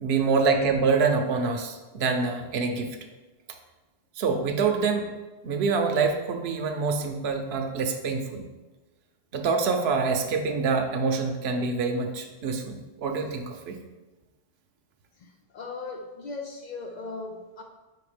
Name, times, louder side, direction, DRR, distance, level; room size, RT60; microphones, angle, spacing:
voice 1, 0.0-2.9 4.2-5.1 5.4-8.4 9.3-13.8, right 4 dB, 60° right, 4 dB, 0.9 m, -26 dB
voice 2, 15.2-17.6, left 3 dB, 90° left, 4 dB, 0.3 m, -38 dB
4.8 x 4.3 x 5.0 m, 1.2 s
omnidirectional pair, 1.3 m